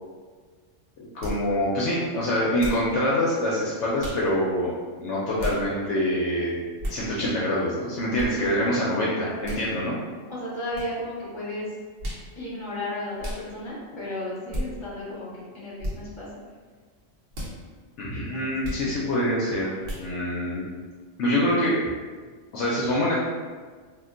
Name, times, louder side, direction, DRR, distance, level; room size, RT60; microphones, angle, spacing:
voice 1, 1.0-4.7 5.0-6.5 6.9-10.0 18.0-20.6 21.2-21.7 22.5-23.1, left 1 dB, 70° left, -6 dB, 0.8 m, -25 dB
sound 1, 1.2-1.4 2.6-2.9 4.0-4.2 5.4-5.6 6.8-7.0 8.2-8.3 9.4-9.6 10.7-10.9 12.0-12.3 13.2-13.4 14.5-14.7 15.8-16.0 17.3-17.5 18.6-18.8 19.8-20.1, equal, 55° right, 0.9 m, -32 dB
voice 2, 9.0-9.5 10.3-11.8 12.3-16.3 18.3-18.5 18.7-19.1, left 1 dB, 25° left, -8 dB, 1.0 m, -34 dB
2.4 x 2.1 x 3.7 m, 1.5 s
omnidirectional pair, 1.3 m